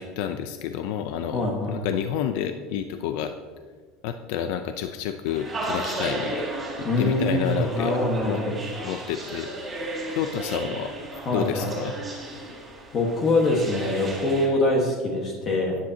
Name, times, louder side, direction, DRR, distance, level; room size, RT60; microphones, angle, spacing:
voice 1, 0.0-1.4 1.7-3.3 4.0-6.4 6.8-7.9 8.2-8.4 8.8-9.5 10.2-12.0, left 9 dB, 70° left, 8 dB, 0.5 m, -29 dB
voice 2, 1.3-1.8 6.8-8.5 11.2-11.7 12.9-15.8, left 2 dB, 30° left, 0 dB, 1.5 m, -24 dB
sound 1, 5.3-14.5, right 2 dB, 15° right, 3.0 m, -34 dB
14.0 x 10.0 x 2.9 m, 1.5 s
supercardioid pair, 140°, 0 cm